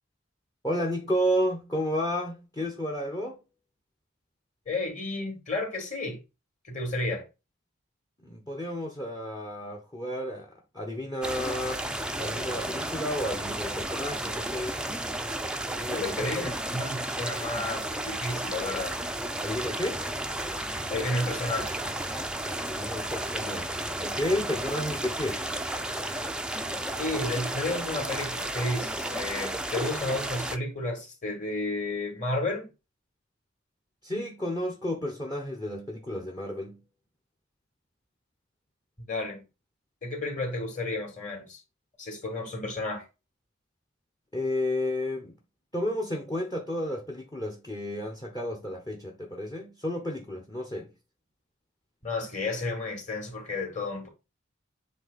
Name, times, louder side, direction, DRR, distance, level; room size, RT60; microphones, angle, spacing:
voice 1, 0.6-3.4 8.2-11.8 12.2-14.8 15.7-16.3 19.4-20.0 22.6-25.4 34.0-36.8 44.3-45.4 45.7-50.9, equal, 20° left, 1.0 m, -32 dB
voice 2, 4.7-6.2 6.6-7.3 15.9-19.0 20.9-21.8 26.9-32.7 39.1-39.4 40.0-41.6 42.0-43.0 52.0-54.1, left 2 dB, 35° left, 2.7 m, -32 dB
sound 1, 11.2-30.6, right 1 dB, 5° right, 0.5 m, -33 dB
7.8 x 3.4 x 4.1 m
head